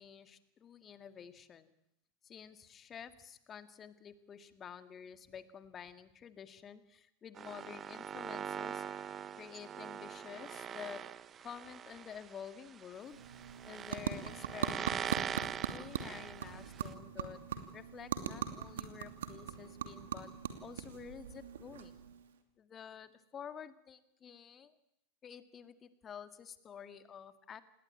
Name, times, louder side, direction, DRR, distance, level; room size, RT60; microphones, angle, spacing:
voice 1, 0.0-1.7 2.2-8.9 9.4-11.0 11.4-13.2 13.6-17.4 17.7-20.3 20.6-22.0 22.6-24.7 25.2-27.6, left 8 dB, 25° left, 11 dB, 2.1 m, -50 dB
sound 1, 7.4-16.9, right 8 dB, 25° right, 1.0 m, -43 dB
sound 2, 12.9-22.4, right 8 dB, 65° right, 2.7 m, -41 dB
28.0 x 20.0 x 8.8 m, 0.79 s
figure-of-eight pair, 85°, 0 cm